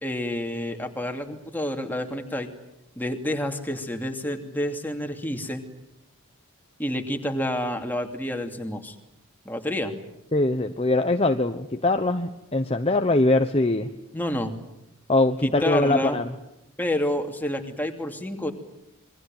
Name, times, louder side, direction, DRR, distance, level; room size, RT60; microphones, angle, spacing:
voice 1, 0.0-2.5 3.0-5.6 6.8-8.9 9.4-10.0 14.1-14.5 15.4-16.2 16.8-18.5, left 1 dB, 10° left, 4 dB, 2.7 m, -29 dB
voice 2, 10.3-13.9 15.1-16.2, left 2 dB, 30° left, 7 dB, 1.1 m, -22 dB
28.0 x 22.5 x 9.0 m, 0.86 s
head